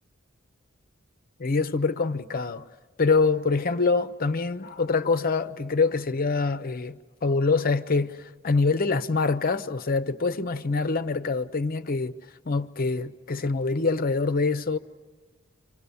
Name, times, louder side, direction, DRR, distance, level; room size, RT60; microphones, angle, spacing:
voice 1, 1.4-2.7 3.0-12.1 12.5-14.8, left 4 dB, 45° left, 0.7 m, -25 dB
28.5 x 25.5 x 7.0 m
head